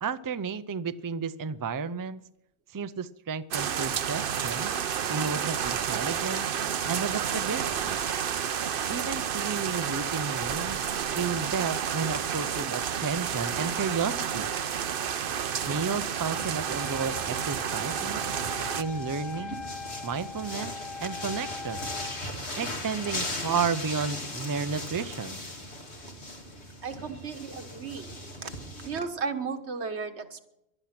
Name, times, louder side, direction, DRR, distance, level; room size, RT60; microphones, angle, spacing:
voice 1, 0.0-2.2 2.7-4.7 5.1-6.5 6.9-8.0 8.9-10.8 11.1-14.5 15.7-18.2 18.8-19.7 20.0-20.7 21.0-21.9 22.6-25.4, right 5 dB, 30° right, 12 dB, 0.4 m, -32 dB
sound 1, 3.5-18.8, right 8 dB, 60° right, 0.8 m, -30 dB
Wind instrument woodwind instrument, 16.2-22.2, left 4 dB, 25° left, 4.0 m, -41 dB
sound 2, 16.3-29.0, left 1 dB, 80° left, 3.2 m, -39 dB
voice 2, 26.8-28.5 28.8-30.4, right 5 dB, 85° right, 7 dB, 1.6 m, -35 dB
19.0 x 12.0 x 5.9 m, 0.87 s
omnidirectional pair, 1.1 m